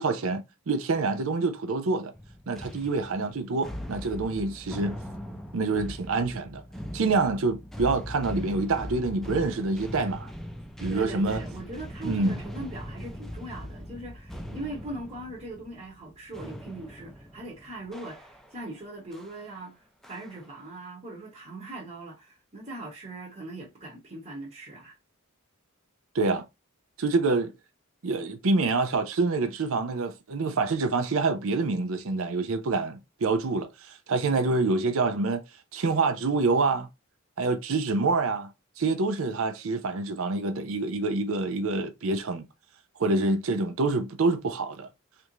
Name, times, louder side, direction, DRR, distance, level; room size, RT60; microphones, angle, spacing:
voice 1, 0.0-2.1 2.5-5.0 5.5-6.6 6.9-10.3 10.8-11.4 12.0-12.4 26.1-26.4 27.0-27.5 28.0-35.4 35.7-36.9 37.4-38.5 38.8-42.4 43.0-44.9, right 3 dB, 65° right, 0.5 m, -26 dB
sound 1, 2.1-18.7 19.1-19.4 20.0-20.6, equal, ahead, 0.4 m, -40 dB
voice 2, 10.9-25.0, right 1 dB, 30° right, 0.9 m, -40 dB
3.3 x 2.5 x 3.0 m
head